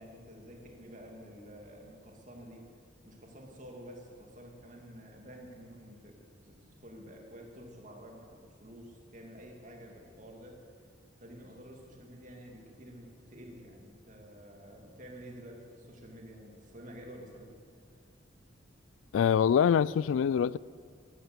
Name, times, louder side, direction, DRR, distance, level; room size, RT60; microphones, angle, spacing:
voice 1, 0.0-2.7 3.1-10.6 11.2-17.6 18.5-18.6, equal, 40° right, 2.6 m, -50 dB
voice 2, 19.1-20.6, left 8 dB, 85° left, 0.3 m, -24 dB
13.0 x 12.5 x 8.1 m
head